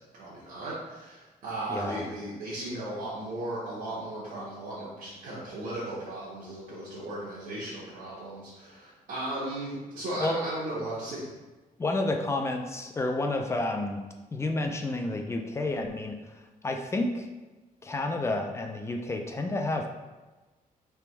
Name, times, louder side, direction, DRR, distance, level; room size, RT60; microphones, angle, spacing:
voice 1, 0.2-11.3, right 1 dB, 65° right, -9 dB, 1.1 m, -36 dB
voice 2, 1.7-2.0 10.2-10.4 11.8-14.0 14.3-16.2 16.6-17.3 17.8-19.9, left 2 dB, 20° left, 3 dB, 0.3 m, -30 dB
3.4 x 3.0 x 4.5 m, 1.2 s
wide cardioid pair, 175°, 15 cm